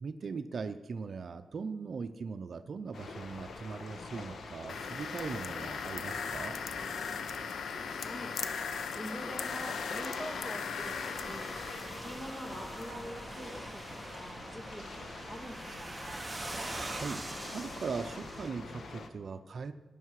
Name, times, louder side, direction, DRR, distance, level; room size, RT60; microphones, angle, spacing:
voice 1, 0.0-6.6 16.5-19.7, right 5 dB, 55° right, 9 dB, 0.6 m, -40 dB
sound 1, 2.9-19.1, left 3 dB, 65° left, 1.4 m, -45 dB
sound 2, 4.7-12.9, left 6 dB, 80° left, 0.8 m, -39 dB
voice 2, 9.0-11.5 12.0-16.3, equal, 20° left, 1 dB, 2.4 m, -45 dB
sound 3, 10.7-18.5, right 2 dB, 15° right, 1.0 m, -43 dB
18.0 x 11.0 x 4.8 m, 1.2 s
wide cardioid pair, 125°, 0 cm